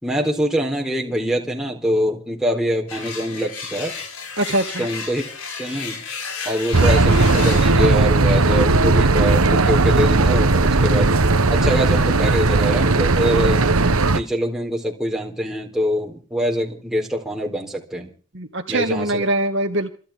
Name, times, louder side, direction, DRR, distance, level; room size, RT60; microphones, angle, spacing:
voice 1, 0.0-4.0 4.8-5.3 5.6-6.0 6.4-11.1 11.5-13.7 14.1-18.1 18.7-19.2, equal, ahead, -1 dB, 4.1 m, -24 dB
sound 1, 2.9-7.9, left 5 dB, 85° left, 7.3 m, -32 dB
voice 2, 4.4-4.9 18.3-19.9, right 1 dB, 55° right, 4 dB, 2.2 m, -22 dB
sound 2, 6.7-14.2, right 3 dB, 80° right, 1.3 m, -16 dB
28.0 x 11.0 x 3.8 m, 0.39 s
head